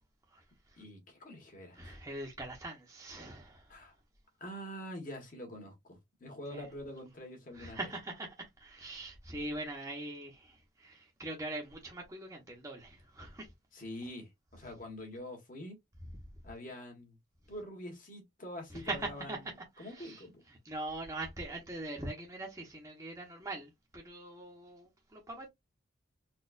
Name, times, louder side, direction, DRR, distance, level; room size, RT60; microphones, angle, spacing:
voice 1, 0.8-2.0 3.7-3.9 4.4-7.8 13.7-15.8 16.4-17.2 17.5-19.4 19.8-20.4, left 1 dB, 40° left, 1.5 m, -45 dB
voice 2, 1.7-3.8 6.5-6.6 7.5-13.5 18.7-19.4 19.8-20.2 20.6-25.5, right 2 dB, 15° right, 0.9 m, -42 dB
4.2 x 2.4 x 2.5 m
head